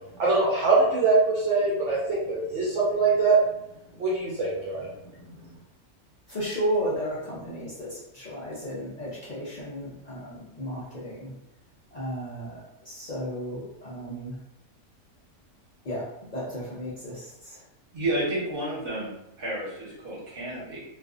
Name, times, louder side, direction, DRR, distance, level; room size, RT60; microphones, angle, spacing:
voice 1, 0.2-3.4 4.0-4.9, right 3 dB, 60° right, -5 dB, 0.9 m, -23 dB
voice 2, 6.3-11.3 11.9-14.4 15.9-16.0 16.3-17.6, equal, 70° left, -8 dB, 0.4 m, -33 dB
voice 3, 17.9-19.1 19.4-20.8, right 1 dB, 45° right, -7 dB, 1.0 m, -31 dB
2.5 x 2.4 x 2.4 m, 0.84 s
omnidirectional pair, 1.6 m